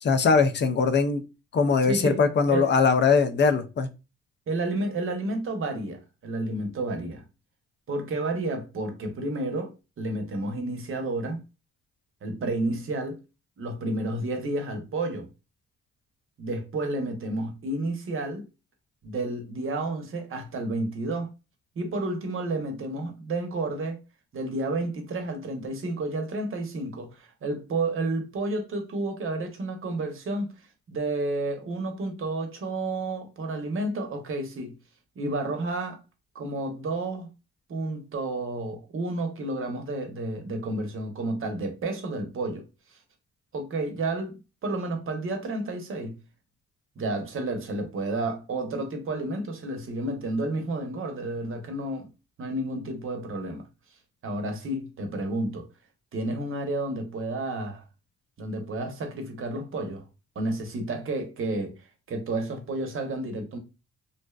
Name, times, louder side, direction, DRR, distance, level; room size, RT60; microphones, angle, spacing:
voice 1, 0.0-1.2 1.5-3.9, left 5 dB, 40° left, 0.5 m, -21 dB
voice 2, 1.8-2.2 2.5-2.7 4.5-7.2 7.9-11.4 12.2-13.2 13.6-15.3 16.4-18.5 19.0-21.3 21.8-24.0 24.3-30.5 30.9-34.8 35.2-36.0 36.3-37.3 37.7-43.0 43.5-44.4 44.6-46.2 47.0-52.1 52.4-53.7 54.2-55.7 56.1-57.8 58.4-60.0 60.4-61.7 62.1-63.6, right 2 dB, 45° right, 0.7 m, -31 dB
2.6 x 2.0 x 2.3 m
cardioid pair, 75°, 29 cm